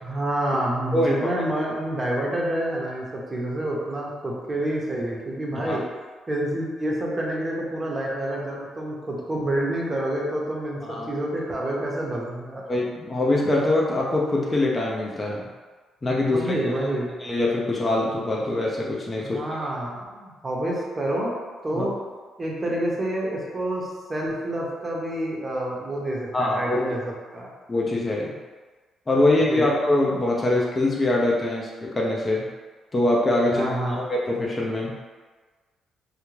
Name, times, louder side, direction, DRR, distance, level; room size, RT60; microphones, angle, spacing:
voice 1, 0.0-5.8 6.3-12.6 16.2-17.1 19.2-21.3 21.6-21.9 22.4-27.5 29.5-29.7 33.5-34.0, right 1 dB, 25° right, -3 dB, 0.7 m, -28 dB
voice 2, 12.7-15.5 16.0-16.6 17.2-19.6 21.7-21.9 26.3-26.8 27.7-28.4 29.1-32.5 32.9-34.9, left 2 dB, 25° left, -3 dB, 0.4 m, -23 dB
2.4 x 2.2 x 3.1 m, 1.4 s
cardioid pair, 90°, 0 cm